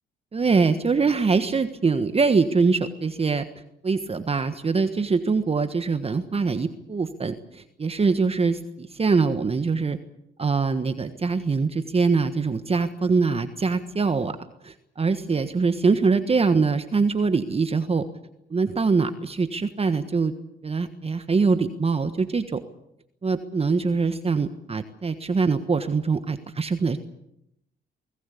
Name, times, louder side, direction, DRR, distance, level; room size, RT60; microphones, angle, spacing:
voice 1, 0.3-3.4 3.8-10.0 10.4-14.4 14.6-18.0 18.5-20.3 20.6-22.6 23.2-27.0, right 4 dB, 30° right, 9 dB, 1.4 m, -23 dB
24.0 x 18.5 x 8.5 m, 0.80 s
cardioid pair, 90°, 20 cm